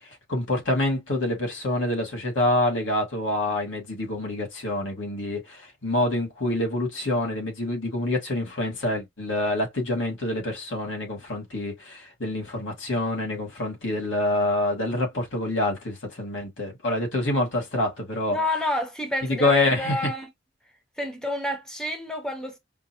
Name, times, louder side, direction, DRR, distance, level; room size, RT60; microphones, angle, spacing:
voice 1, 0.3-18.4 19.2-20.0, left 1 dB, 85° left, 1.9 m, -26 dB
voice 2, 18.3-20.3 21.0-22.6, left 2 dB, 5° left, 0.9 m, -29 dB
5.3 x 2.1 x 2.9 m
head